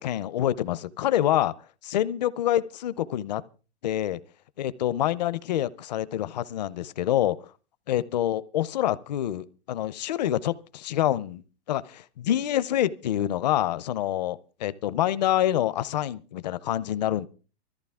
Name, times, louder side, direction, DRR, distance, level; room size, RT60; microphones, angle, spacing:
voice 1, 0.0-1.5 1.8-3.4 3.8-4.2 4.6-7.4 7.9-11.4 11.7-17.3, left 12 dB, 40° left, 0.6 m, -26 dB
21.0 x 14.0 x 3.5 m
hypercardioid pair, 170°, 33 cm